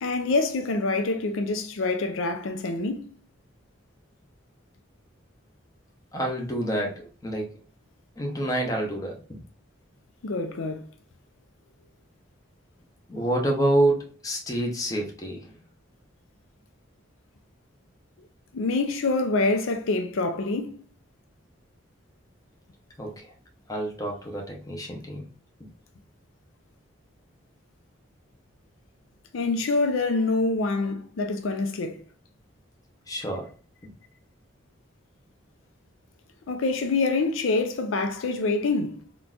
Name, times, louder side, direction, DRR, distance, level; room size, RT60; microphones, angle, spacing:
voice 1, 0.0-3.1 10.2-10.9 18.5-20.8 29.3-32.0 36.5-39.0, left 3 dB, 80° left, 0.5 m, -26 dB
voice 2, 6.1-7.5 8.2-9.4 13.1-15.6 23.0-23.3 23.7-25.3 25.6-25.7 33.1-33.5 33.8-33.9, right 1 dB, 15° left, 0.7 m, -28 dB
3.8 x 2.3 x 2.3 m
head